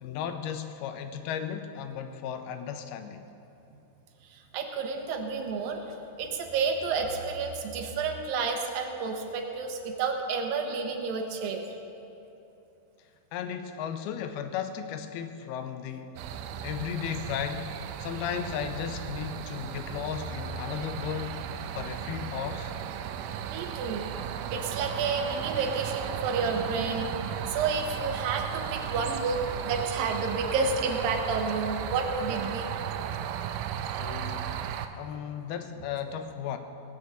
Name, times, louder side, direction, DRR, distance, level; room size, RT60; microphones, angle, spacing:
voice 1, 0.0-3.2 13.3-16.2 16.6-22.7 34.0-34.6 35.0-36.6, left 8 dB, 85° left, 8 dB, 2.7 m, -35 dB
voice 2, 4.3-5.9 6.2-11.6 16.6-16.7 23.5-24.1 24.5-27.1 27.5-32.7, right 4 dB, 70° right, 3 dB, 2.8 m, -30 dB
sound 1, 16.2-34.9, right 9 dB, 90° right, 2.5 m, -35 dB
18.0 x 6.3 x 8.1 m, 2.8 s
omnidirectional pair, 4.3 m